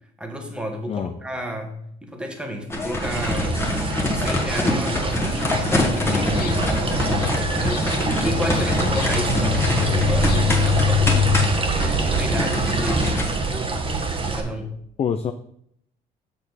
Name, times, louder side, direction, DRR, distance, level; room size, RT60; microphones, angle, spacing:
voice 1, 0.2-3.6 4.1-6.8 7.6-11.4 11.7-13.4 14.2-14.8, equal, 5° right, 3 dB, 1.4 m, -32 dB
sound 1, 2.7-14.3, left 2 dB, 15° left, 1.5 m, -26 dB
sound 2, 3.0-14.4, right 3 dB, 30° right, 1.2 m, -25 dB
sound 3, 5.5-11.5, left 8 dB, 70° left, 0.9 m, -25 dB
voice 2, 6.0-6.5 15.0-15.3, left 7 dB, 35° left, 9 dB, 0.4 m, -27 dB
6.8 x 6.2 x 4.0 m, 0.69 s
cardioid pair, 110°, 17 cm